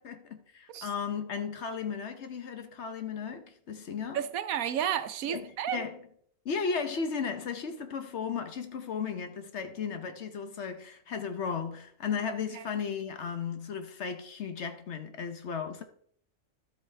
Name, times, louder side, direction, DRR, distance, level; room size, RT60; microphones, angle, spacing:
voice 1, 0.0-4.3 5.3-6.0 6.4-15.8, left 6 dB, 55° left, 1.0 m, -35 dB
voice 2, 4.1-5.8, right 10 dB, 80° right, 1.1 m, -31 dB
12.0 x 7.9 x 3.3 m
omnidirectional pair, 1.5 m